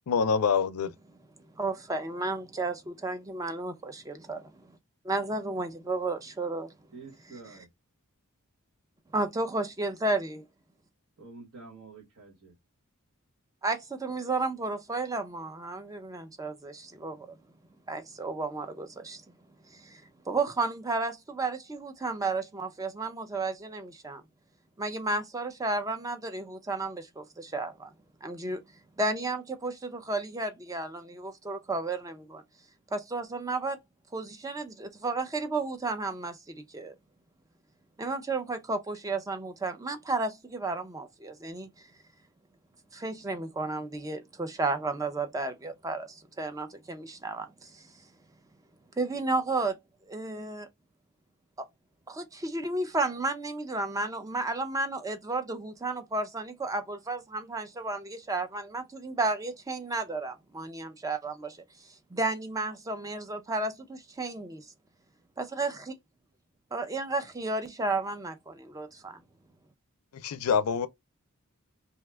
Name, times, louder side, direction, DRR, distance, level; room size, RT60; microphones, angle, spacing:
voice 1, 0.1-0.9 70.2-70.9, left 6 dB, 75° left, 0.4 m, -25 dB
voice 2, 1.5-4.8 5.0-6.7 9.1-10.4 13.6-17.4 17.9-19.2 19.7-24.2 24.8-27.9 28.2-28.6 29.0-32.4 32.9-33.8 34.1-36.9 38.0-41.9 42.9-47.9 48.9-49.8 50.0-50.7 51.6-51.7 52.1-64.7 65.6-65.7 66.7-69.2, right 3 dB, 15° right, 0.4 m, -33 dB
voice 3, 6.9-7.7 11.2-12.6, right 4 dB, 65° right, 1.3 m, -48 dB
2.7 x 2.2 x 3.3 m
head